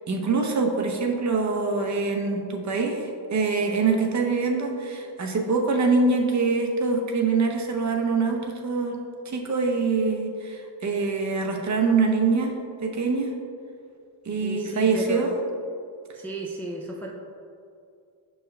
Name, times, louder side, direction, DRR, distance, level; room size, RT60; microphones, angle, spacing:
voice 1, 0.1-9.0 9.2-12.5 12.8-13.3 14.2-15.3, right 4 dB, 35° right, 2 dB, 0.7 m, -24 dB
voice 2, 14.4-15.4 16.1-17.1, right 2 dB, 5° left, -2 dB, 0.4 m, -34 dB
6.2 x 4.7 x 3.2 m, 2.4 s
cardioid pair, 120°, 49 cm